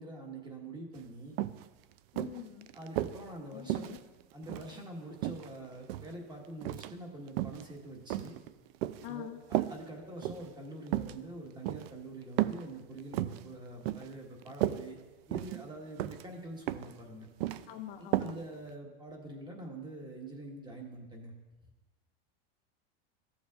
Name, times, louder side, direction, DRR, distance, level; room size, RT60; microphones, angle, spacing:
voice 1, 0.0-1.3 2.7-3.9 4.3-8.4 9.1-15.0 15.3-17.3 18.0-21.3, right 1 dB, 15° right, 0 dB, 1.4 m, -45 dB
sound 1, 1.0-1.1 1.4-1.6 2.2-3.2 3.7-4.8 5.2-6.1 6.6-6.9 7.3-7.6 8.1-9.1 9.5-9.8 10.2-10.5 10.9-11.1 11.6-11.9 12.4-12.6 13.0-13.4 13.8-14.1 14.4-14.8 15.3-15.6 16.0-16.2 16.7-17.0 17.2-17.6 18.1-18.3 18.7-18.8, right 14 dB, 65° right, 0.5 m, -33 dB
voice 2, 2.1-2.7 3.5-4.0 9.0-9.4 17.7-18.3, left 12 dB, 45° left, 6 dB, 0.6 m, -44 dB
14.5 x 7.2 x 2.4 m, 1.2 s
supercardioid pair, 140°, 33 cm